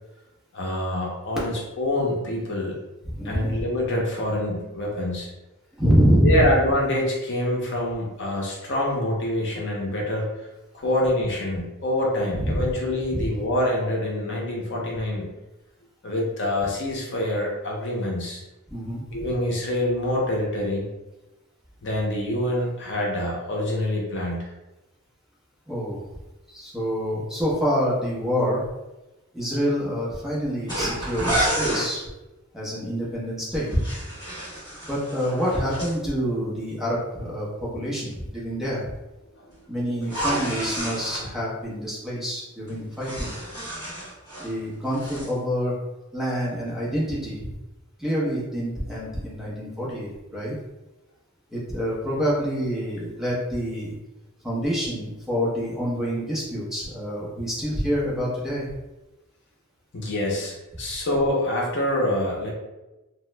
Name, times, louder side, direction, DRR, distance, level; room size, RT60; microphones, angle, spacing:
voice 1, 0.5-2.8 3.2-5.3 6.2-10.3 10.7-15.3 16.0-18.4 19.1-20.9 21.8-24.5 39.4-39.5 59.9-62.5, left 1 dB, 55° left, -2 dB, 0.7 m, -26 dB
voice 2, 3.0-3.6 5.8-6.5 12.3-12.7 13.1-13.3 18.7-19.3 25.7-26.0 26.5-28.6 29.3-32.1 32.5-33.7 34.9-38.9 39.7-43.3 44.4-45.8 46.1-47.5 48.0-50.5 51.5-54.0 54.4-58.7, equal, ahead, -7 dB, 0.7 m, -26 dB
sound 1, 30.7-31.9 33.5-35.9 40.0-41.2 42.7-44.6 44.9-45.3, right 1 dB, 15° left, 1.4 m, -29 dB
2.9 x 2.1 x 3.1 m, 1.0 s
head